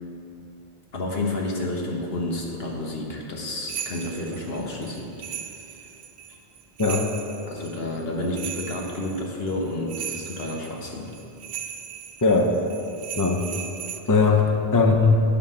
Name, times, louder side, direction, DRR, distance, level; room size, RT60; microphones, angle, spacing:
voice 1, 0.9-5.1 7.5-11.1, left 2 dB, 70° left, -1 dB, 1.4 m, -30 dB
sound 1, 3.7-14.0, right 9 dB, 85° right, 0.8 m, -37 dB
voice 2, 6.8-7.1 12.2-12.6 13.1-13.4 14.1-15.2, left 4 dB, 25° left, 3 dB, 0.6 m, -19 dB
8.5 x 5.7 x 6.4 m, 2.6 s
omnidirectional pair, 1.1 m